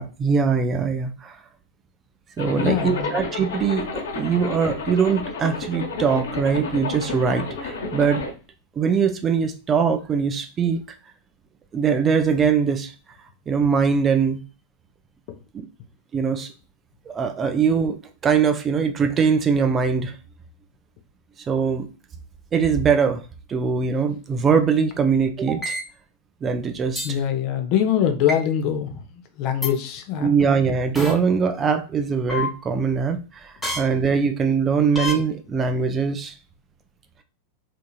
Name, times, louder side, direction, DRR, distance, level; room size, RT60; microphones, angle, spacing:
voice 1, 0.0-1.4 2.4-8.2 8.8-10.8 11.7-12.9 13.5-14.4 15.5-15.7 16.1-16.5 17.1-18.0 18.2-20.2 21.5-21.9 22.5-23.2 23.5-25.8 26.4-27.2 30.2-36.4, right 6 dB, 25° right, 6 dB, 0.4 m, -22 dB
Zipper (clothing), 2.4-8.3, left 3 dB, 65° left, 0.9 m, -30 dB
voice 2, 2.6-3.2 15.3-15.4 27.0-30.3 30.6-30.8, left 9 dB, 45° left, 7 dB, 0.6 m, -24 dB
sound 1, 25.6-25.8 27.0-27.1 28.3-28.4 29.6-29.7 31.0-31.1 32.3-32.5 33.6-33.8 35.0-35.1, left 2 dB, 5° left, 1.1 m, -26 dB
3.6 x 2.8 x 2.3 m, 0.34 s
figure-of-eight pair, 90°, 0 cm